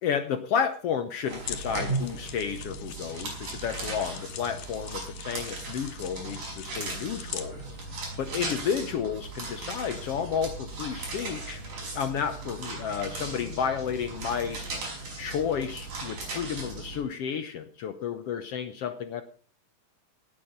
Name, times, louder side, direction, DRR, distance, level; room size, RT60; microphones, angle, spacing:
voice 1, 0.0-7.5 8.2-11.6 11.9-14.6 15.2-19.2, left 7 dB, 70° left, 9 dB, 1.5 m, -31 dB
sound 1, 1.2-17.0, right 3 dB, 65° right, 7.1 m, -37 dB
sound 2, 1.4-8.2, left 10 dB, 85° left, 2.9 m, -43 dB
18.0 x 8.8 x 5.3 m, 0.42 s
omnidirectional pair, 3.7 m